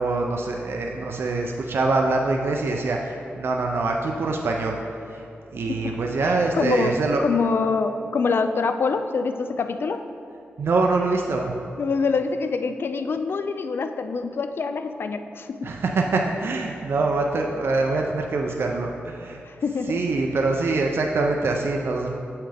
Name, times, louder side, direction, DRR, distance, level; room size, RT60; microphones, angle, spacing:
voice 1, 0.0-4.8 5.1-5.2 5.5-7.2 10.6-11.5 15.6-19.4 19.9-22.1, right 3 dB, 65° right, 1 dB, 0.5 m, -24 dB
voice 2, 5.7-7.0 7.2-10.0 11.8-15.7 19.5-20.0, left 4 dB, 60° left, 8 dB, 0.4 m, -25 dB
7.5 x 5.6 x 3.4 m, 2.6 s
wide cardioid pair, 105°, 4 cm